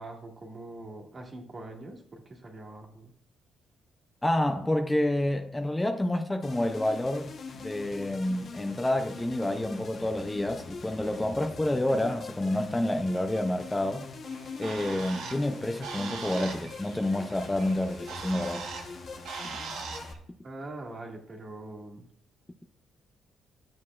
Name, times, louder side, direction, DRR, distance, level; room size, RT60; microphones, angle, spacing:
voice 1, 0.0-3.1 20.4-22.1, right 2 dB, 40° right, 1.8 m, -43 dB
voice 2, 4.2-14.1 14.6-18.7, left 1 dB, 15° left, 0.5 m, -29 dB
sound 1, 6.4-20.1, left 4 dB, 50° left, 1.0 m, -43 dB
Bird, 14.3-20.2, right 5 dB, 85° right, 1.2 m, -41 dB
10.5 x 7.4 x 2.4 m
cardioid pair, 90°, 0 cm